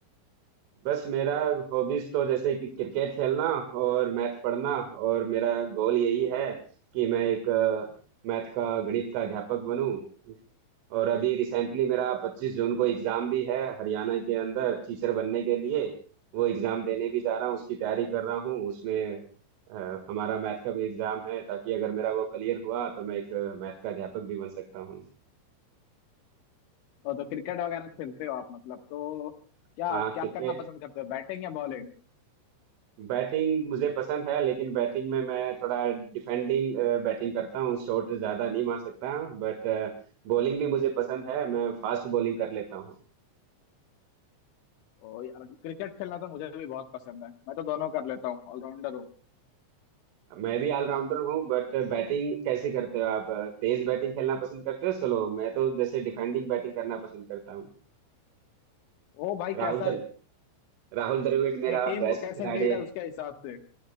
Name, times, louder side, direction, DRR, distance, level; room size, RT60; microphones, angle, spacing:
voice 1, 0.9-6.6 6.9-7.9 8.2-10.0 10.3-10.4 10.9-15.9 16.3-19.2 19.7-25.0 29.9-30.6 33.0-39.9 40.3-43.0 50.3-57.7 59.5-60.0 60.9-62.8, right 10 dB, 80° right, 7 dB, 4.1 m, -29 dB
voice 2, 27.0-29.3 29.8-32.0 45.0-49.1 59.1-60.0 61.6-63.6, left 11 dB, 75° left, 6 dB, 3.6 m, -35 dB
27.0 x 23.5 x 2.2 m, 0.40 s
omnidirectional pair, 5.7 m